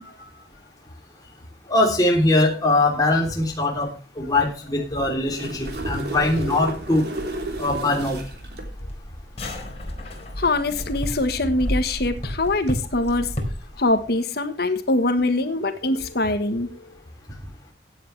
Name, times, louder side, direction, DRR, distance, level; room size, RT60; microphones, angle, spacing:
voice 1, 1.7-3.9 4.2-7.1 7.6-8.2, left 2 dB, 20° left, -1 dB, 3.4 m, -21 dB
sound 1, 4.3-13.8, equal, 40° left, 4.2 m, -33 dB
sound 2, 5.1-8.7 12.5-12.7, right 2 dB, 65° right, 3.3 m, -33 dB
voice 2, 10.4-13.3 13.8-16.7, left 2 dB, 60° left, 8 dB, 1.5 m, -23 dB
16.0 x 9.6 x 3.3 m, 0.35 s
head